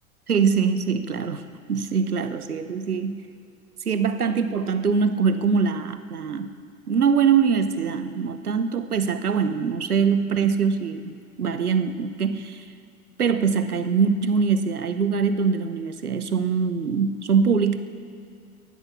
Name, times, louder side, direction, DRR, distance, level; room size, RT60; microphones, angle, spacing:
voice 1, 0.3-1.4 1.7-3.2 3.8-6.5 6.9-12.6 13.2-17.8, right 6 dB, 85° right, 10 dB, 1.0 m, -23 dB
14.5 x 11.0 x 7.3 m, 2.3 s
figure-of-eight pair, 90°, 44 cm